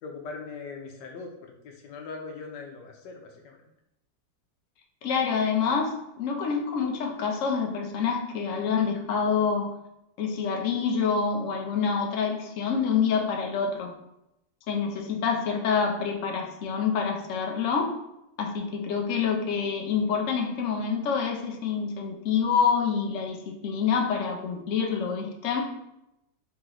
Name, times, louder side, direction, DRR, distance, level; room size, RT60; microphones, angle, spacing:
voice 1, 0.0-3.6, left 4 dB, 80° left, 2 dB, 1.4 m, -40 dB
voice 2, 5.0-9.7 10.2-13.9 14.7-17.9 18.4-25.6, left 6 dB, 60° left, 2 dB, 0.9 m, -27 dB
4.0 x 3.0 x 3.7 m, 0.85 s
omnidirectional pair, 1.8 m